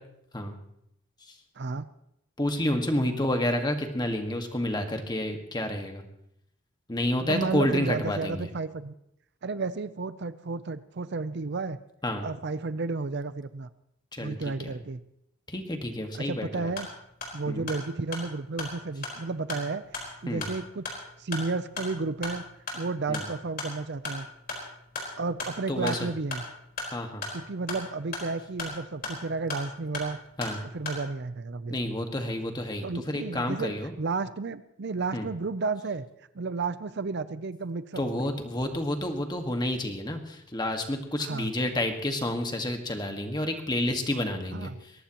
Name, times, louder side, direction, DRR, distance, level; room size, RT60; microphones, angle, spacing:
voice 1, 1.6-1.9 7.2-8.9 9.4-11.8 12.2-13.7 14.2-15.0 16.1-16.9 17.3-19.8 20.2-20.9 21.2-22.4 22.7-24.3 25.2-26.4 27.3-30.2 30.7-32.0 32.8-36.1 36.3-38.3 41.2-41.5 44.5-44.8, right 3 dB, 55° right, 14 dB, 0.5 m, -32 dB
voice 2, 2.4-6.0 6.9-8.5 12.0-12.3 14.1-14.7 15.5-16.7 17.5-17.7 20.3-20.5 23.1-23.2 25.7-26.0 26.9-27.2 30.4-30.6 31.7-33.9 35.1-35.3 37.9-44.9, left 1 dB, 20° left, 5 dB, 1.6 m, -29 dB
sound 1, 16.6-31.0, left 3 dB, 40° left, 4.4 m, -39 dB
22.0 x 18.5 x 3.0 m, 0.78 s
head